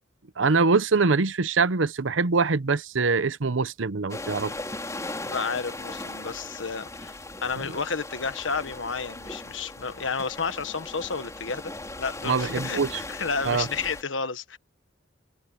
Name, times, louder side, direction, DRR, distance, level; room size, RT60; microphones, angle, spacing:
voice 1, 0.4-4.5 12.2-13.0 13.5-13.7, right 4 dB, 85° right, 0.8 m, -23 dB
sound 1, 4.1-14.0, left 2 dB, 15° left, 4.5 m, -38 dB
voice 2, 5.2-7.1 7.4-11.7 12.0-14.6, left 5 dB, 90° left, 1.4 m, -31 dB
head